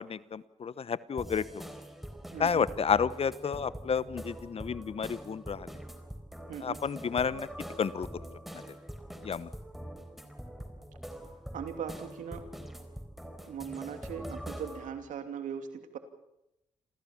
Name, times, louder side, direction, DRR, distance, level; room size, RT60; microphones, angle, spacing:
voice 1, 0.0-1.6 2.4-5.7 6.6-7.5 7.8-8.1 9.2-9.5, left 6 dB, 50° left, 18 dB, 1.0 m, -31 dB
sound 1, 1.2-14.9, equal, ahead, 4.2 m, -44 dB
voice 2, 2.3-2.7 6.5-6.8 11.5-12.5 13.4-16.0, right 7 dB, 80° right, 8 dB, 2.8 m, -39 dB
28.0 x 15.0 x 7.3 m, 0.85 s
supercardioid pair, 60°, 13 cm